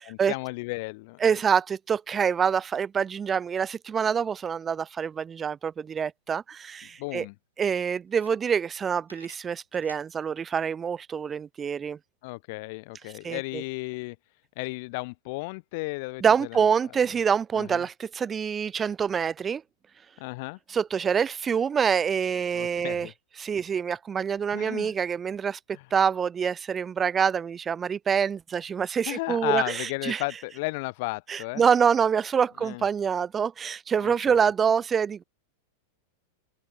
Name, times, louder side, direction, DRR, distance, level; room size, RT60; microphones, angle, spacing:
voice 1, 0.1-1.2 7.0-7.3 12.2-14.2 14.6-16.2 16.5-16.6 17.6-17.9 20.2-20.6 22.5-23.1 24.5-24.9 25.7-25.8 29.1-31.7 32.6-32.8 34.0-34.4, left 26 dB, 50° left, 0.6 m, -34 dB
voice 2, 1.2-7.3 7.6-12.0 13.0-13.6 16.2-19.6 20.7-25.6 25.9-30.4 31.3-35.2, right 7 dB, 20° right, 0.5 m, -26 dB
sound 1, 6.7-6.8 7.1-7.2 7.7-7.8 8.1-8.8 9.0-10.1, equal, 90° right, 1.1 m, -51 dB
open air
figure-of-eight pair, 90°, 0 cm